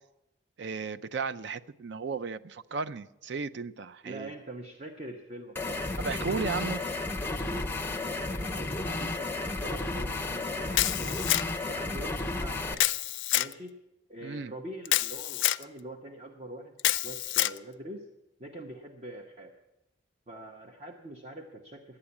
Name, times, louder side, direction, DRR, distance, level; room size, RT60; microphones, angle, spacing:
voice 1, 0.6-4.3 6.0-6.8 14.2-14.5, right 4 dB, 60° right, 0.4 m, -35 dB
voice 2, 4.0-6.8 7.5-11.3 11.6-12.8 13.3-13.8 14.1-18.1 18.4-19.5 20.3-22.0, right 1 dB, 35° right, 0.8 m, -44 dB
sound 1, 5.5-12.7, left 2 dB, 10° left, 0.6 m, -33 dB
Camera, 10.7-11.7 12.8-13.5 14.9-15.6 16.8-17.6, left 15 dB, 70° left, 0.4 m, -27 dB
11.5 x 8.8 x 8.3 m
head